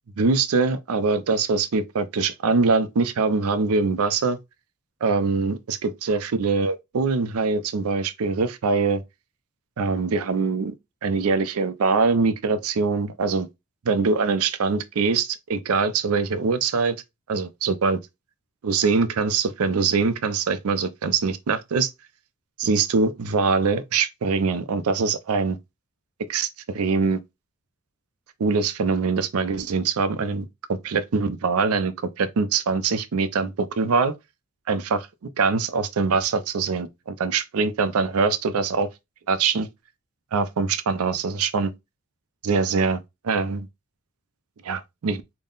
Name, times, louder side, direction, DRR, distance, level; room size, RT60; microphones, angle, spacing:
voice 1, 0.2-4.4 5.0-9.0 9.8-10.7 11.0-13.5 13.9-17.0 17.3-18.0 18.6-21.9 22.6-25.6 26.3-27.2 28.4-34.1 34.7-35.1 35.4-38.9 39.3-39.7 40.3-41.7 42.4-43.0 43.2-43.7 44.6-45.2, right 4 dB, 85° right, 0.5 m, -23 dB
3.6 x 2.0 x 3.8 m
head